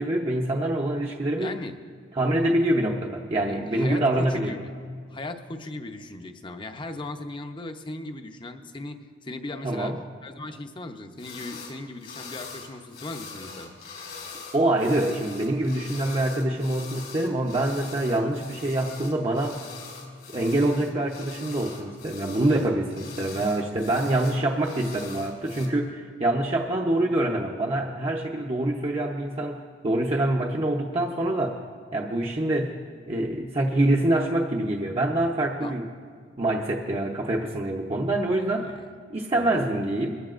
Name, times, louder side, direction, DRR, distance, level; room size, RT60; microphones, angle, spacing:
voice 1, 0.0-1.5 2.1-4.5 9.6-10.0 14.5-19.6 20.3-31.6 31.9-32.8 33.1-35.9 36.4-38.8 39.1-40.2, right 1 dB, 35° right, -2 dB, 0.8 m, -25 dB
voice 2, 1.4-1.7 3.5-4.7 5.1-9.9 10.2-13.8 35.6-35.7 38.7-38.9 39.3-39.6, left 2 dB, 25° left, 6 dB, 0.8 m, -38 dB
sound 1, 11.2-11.7 12.0-25.7, left 5 dB, 80° left, 3.9 m, -43 dB
22.0 x 15.0 x 2.5 m, 2.1 s
head